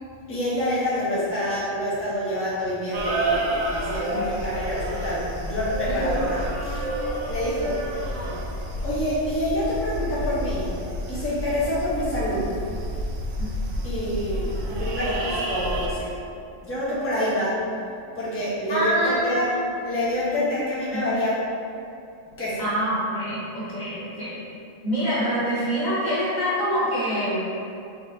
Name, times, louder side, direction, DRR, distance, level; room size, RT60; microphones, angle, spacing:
voice 1, 0.3-6.8 7.3-8.3 8.8-10.8 11.1-12.6 13.8-16.2 16.6-17.6 18.2-19.5 19.8-21.4 22.4-22.6, left 1 dB, 10° left, -10 dB, 1.0 m, -27 dB
sound 1, 2.9-15.9, right 1 dB, 75° right, 1.0 m, -29 dB
voice 2, 18.7-19.7 20.3-20.6 20.9-21.0 22.6-24.4 24.8-27.5, equal, 80° left, -9 dB, 1.8 m, -26 dB
4.3 x 4.2 x 2.8 m, 2.6 s
omnidirectional pair, 1.4 m